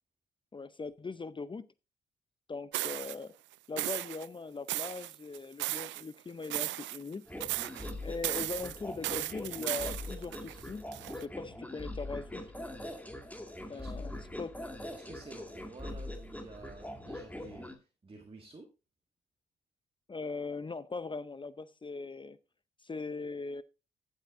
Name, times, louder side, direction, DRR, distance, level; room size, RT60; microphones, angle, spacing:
voice 1, 0.5-1.7 2.5-3.3 3.7-7.2 8.0-10.9 11.1-12.4 13.7-14.1 14.4-14.5 20.1-22.4 22.8-23.6, left 4 dB, 25° left, 0.6 m, -40 dB
sound 1, 2.7-3.2 3.8-4.3 4.7-6.0 6.4-7.1 7.4-7.9 8.2-11.2, right 17 dB, 70° right, 0.4 m, -36 dB
sound 2, 7.3-17.7, left 1 dB, 5° left, 2.2 m, -42 dB
voice 2, 13.7-14.4 14.9-18.7, right 3 dB, 30° right, 1.9 m, -51 dB
14.5 x 8.1 x 2.6 m
hypercardioid pair, 50°, 20 cm